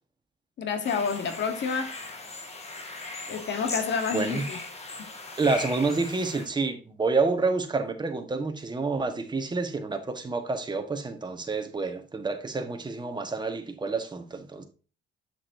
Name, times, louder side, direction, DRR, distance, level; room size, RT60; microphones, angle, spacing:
voice 1, 0.6-2.0 3.3-4.6, left 5 dB, 65° left, 1.3 m, -29 dB
sound 1, 0.8-6.5, left 3 dB, 30° left, 1.8 m, -38 dB
voice 2, 4.1-4.4 5.3-14.6, right 3 dB, 20° right, 1.3 m, -28 dB
7.4 x 6.5 x 2.7 m
cardioid pair, 90°, 20 cm